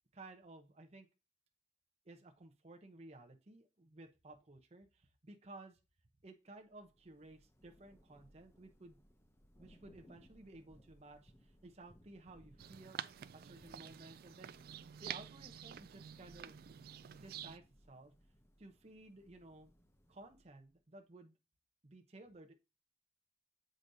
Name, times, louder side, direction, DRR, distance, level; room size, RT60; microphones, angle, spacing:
voice 1, 0.1-1.1 2.0-5.8 6.2-9.0 9.6-14.5 15.0-16.7 17.1-18.1 18.6-19.7 20.1-21.4 21.8-22.5, right 2 dB, 35° right, 4 dB, 0.8 m, -56 dB
Thunder / Rain, 6.6-20.7, equal, 15° left, 0.6 m, -66 dB
sound 1, 12.6-17.6, right 10 dB, 55° right, 0.3 m, -49 dB
7.7 x 5.0 x 2.7 m, 0.27 s
head